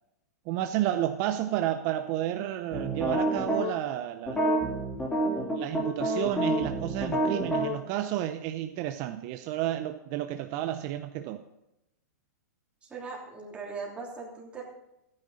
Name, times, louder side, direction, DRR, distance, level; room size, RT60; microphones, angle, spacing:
voice 1, 0.5-4.4 5.5-11.4, right 12 dB, 40° right, 8 dB, 0.7 m, -31 dB
sound 1, 2.7-3.6 4.3-7.7, right 1 dB, 10° left, 3.5 m, -28 dB
voice 2, 12.8-14.6, right 4 dB, 10° right, -2 dB, 3.1 m, -39 dB
14.5 x 9.9 x 4.2 m, 0.88 s
hypercardioid pair, 140°, 9 cm